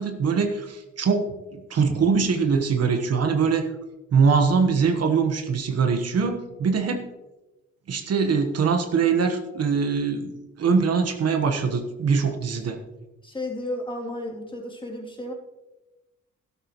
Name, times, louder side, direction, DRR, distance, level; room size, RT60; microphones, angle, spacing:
voice 1, 0.0-3.7 4.1-7.1 7.9-12.8, right 5 dB, 55° right, 6 dB, 1.3 m, -23 dB
voice 2, 13.2-15.3, left 1 dB, 15° left, -2 dB, 2.9 m, -33 dB
12.5 x 12.5 x 3.1 m, 1.1 s
cardioid pair, 90°, 30 cm